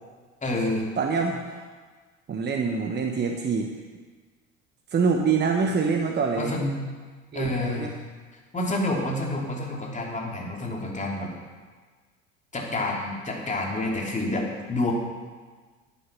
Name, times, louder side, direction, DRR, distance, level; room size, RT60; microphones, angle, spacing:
voice 1, 0.4-0.9 6.4-6.8 7.3-7.9 8.5-11.3 12.5-14.9, left 2 dB, 20° left, -1 dB, 3.1 m, -28 dB
voice 2, 1.0-1.7 2.3-3.8 4.9-6.5 7.3-7.9, right 5 dB, 25° right, 3 dB, 1.1 m, -25 dB
11.0 x 9.6 x 6.0 m, 1.4 s
figure-of-eight pair, 65°, 39 cm